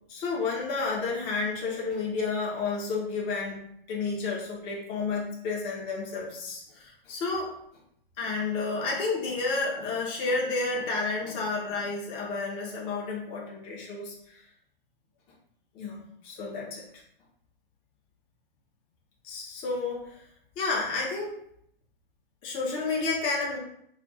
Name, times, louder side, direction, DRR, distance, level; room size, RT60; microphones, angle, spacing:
voice 1, 0.1-3.6 3.9-7.5 8.2-14.1 15.7-16.8 19.2-20.2 20.6-21.4 22.4-23.6, left 3 dB, 20° left, -3 dB, 0.6 m, -31 dB
2.4 x 2.3 x 3.9 m, 0.71 s
hypercardioid pair, 125°, 29 cm